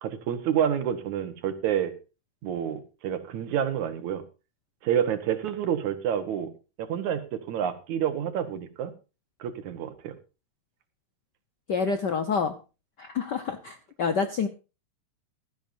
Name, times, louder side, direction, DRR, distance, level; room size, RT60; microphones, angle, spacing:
voice 1, 0.0-1.9 2.4-4.2 4.8-6.5 6.8-8.9 9.4-10.1, right 9 dB, 80° right, 9 dB, 2.7 m, -28 dB
voice 2, 11.7-12.6 13.0-14.5, left 5 dB, 65° left, 8 dB, 1.0 m, -27 dB
16.0 x 13.5 x 2.7 m, 0.31 s
omnidirectional pair, 3.3 m